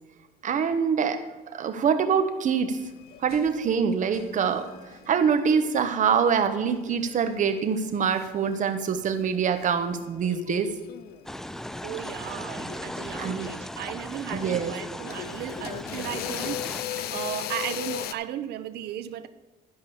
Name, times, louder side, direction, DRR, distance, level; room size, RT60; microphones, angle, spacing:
voice 1, 0.4-1.2 1.5-2.8 3.2-4.7 5.1-10.7 13.2-13.5 14.3-14.7, right 6 dB, 50° right, 9 dB, 1.2 m, -24 dB
sound 1, 2.7-9.7 10.0-11.4 12.3-12.4 12.7-18.1, left 11 dB, 70° left, 0.6 m, -38 dB
sound 2, 11.2-16.8, left 1 dB, ahead, 0.4 m, -37 dB
voice 2, 11.8-16.8 17.1-19.3, right 11 dB, 75° right, 12 dB, 0.7 m, -35 dB
11.5 x 5.2 x 7.1 m, 1.2 s
cardioid pair, 110°, 17 cm